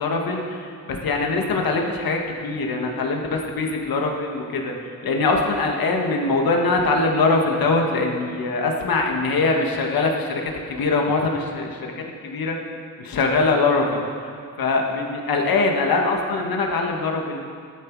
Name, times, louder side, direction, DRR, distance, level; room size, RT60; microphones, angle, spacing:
voice 1, 0.0-12.6 13.0-14.0 14.6-17.4, left 3 dB, 90° left, 1 dB, 1.7 m, -22 dB
15.0 x 12.5 x 4.7 m, 2.3 s
cardioid pair, 85°, 35 cm